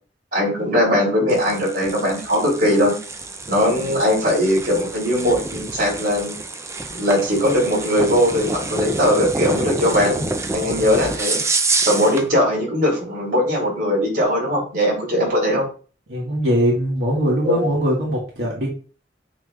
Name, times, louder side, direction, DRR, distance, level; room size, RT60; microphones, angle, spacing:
voice 1, 0.3-3.0 3.5-6.4 7.0-10.3 10.5-11.4 11.8-15.6 17.4-17.7, equal, 50° right, -3 dB, 3.5 m, -19 dB
sound 1, 1.3-12.3, right 3 dB, 15° right, 0.5 m, -27 dB
voice 2, 16.1-18.7, equal, 75° right, -4 dB, 2.0 m, -21 dB
7.4 x 6.0 x 2.5 m, 0.39 s
head